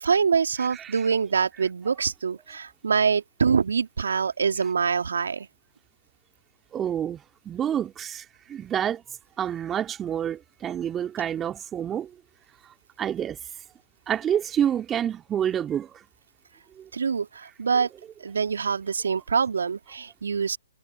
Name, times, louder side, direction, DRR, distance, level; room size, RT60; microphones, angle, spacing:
voice 1, 0.0-5.5 16.9-17.9 18.2-20.6, right 6 dB, 70° right, 2.1 m, -25 dB
voice 2, 0.7-1.0 6.7-9.0 9.4-12.1 13.0-13.4 14.1-16.0 16.8-16.9, right 9 dB, 15° right, 2.4 m, -28 dB
figure-of-eight pair, 130°, 0 cm